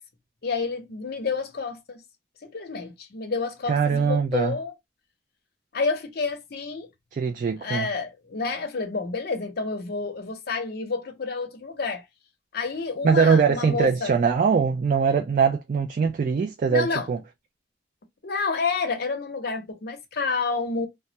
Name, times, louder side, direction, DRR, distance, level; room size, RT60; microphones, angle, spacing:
voice 1, 0.4-2.0 2.4-4.7 5.7-6.9 7.6-12.0 12.5-14.1 16.7-17.1 18.2-20.9, left 4 dB, 55° left, 0.6 m, -29 dB
voice 2, 3.7-4.6 7.1-7.9 13.0-17.2, right 5 dB, 45° right, 0.3 m, -22 dB
2.2 x 2.0 x 2.7 m
head